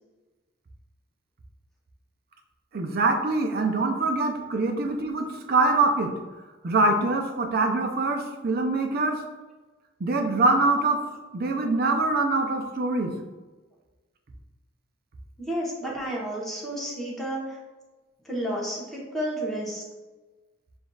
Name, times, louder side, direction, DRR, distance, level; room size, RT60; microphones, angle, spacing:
voice 1, 2.7-6.1 6.6-9.2 10.0-11.0 11.3-13.1, right 3 dB, 50° right, 4 dB, 0.6 m, -24 dB
voice 2, 15.5-17.6 18.2-19.8, right 1 dB, ahead, -6 dB, 1.1 m, -31 dB
6.9 x 2.7 x 2.4 m, 1.2 s
head